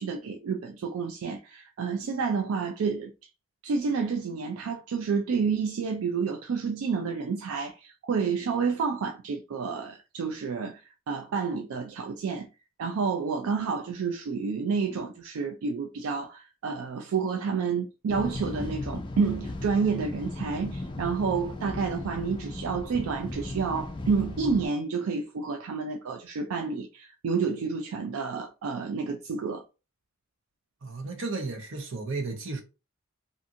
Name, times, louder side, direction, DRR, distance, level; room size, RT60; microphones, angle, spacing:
voice 1, 0.0-3.1 3.6-10.8 11.1-12.5 12.8-29.6, right 5 dB, 80° right, 0.4 m, -29 dB
sound 1, 18.1-24.7, left 2 dB, 20° left, 0.3 m, -36 dB
voice 2, 30.8-32.6, right 3 dB, 60° right, 0.7 m, -33 dB
2.5 x 2.5 x 2.6 m
head